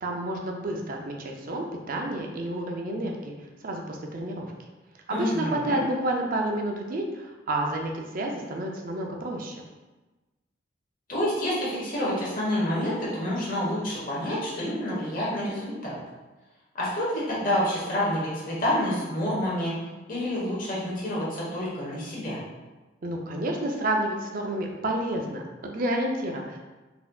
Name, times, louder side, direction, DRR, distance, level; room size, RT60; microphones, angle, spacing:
voice 1, 0.0-3.3 3.6-4.5 5.1-9.6 23.0-26.6, right 1 dB, 45° right, 1 dB, 0.5 m, -30 dB
voice 2, 5.1-5.8 11.1-16.0 16.7-19.7 20.1-22.4, left 1 dB, 45° left, -7 dB, 1.2 m, -28 dB
4.1 x 2.7 x 2.3 m, 1.2 s
head